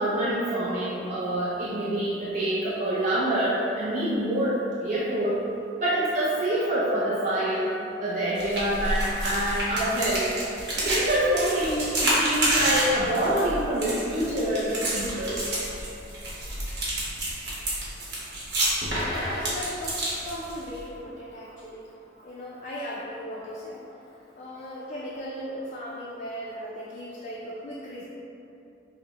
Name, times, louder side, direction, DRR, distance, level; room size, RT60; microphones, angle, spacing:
voice 1, 0.0-5.4 5.8-7.7 8.0-10.3 10.8-15.4, right 1 dB, 45° right, -9 dB, 0.5 m, -26 dB
sound 1, 8.4-20.8, right 1 dB, 60° right, 1.0 m, -29 dB
voice 2, 18.9-21.9 22.2-23.8 24.4-28.0, equal, 40° left, -5 dB, 0.4 m, -37 dB
5.7 x 2.1 x 2.8 m, 2.8 s
head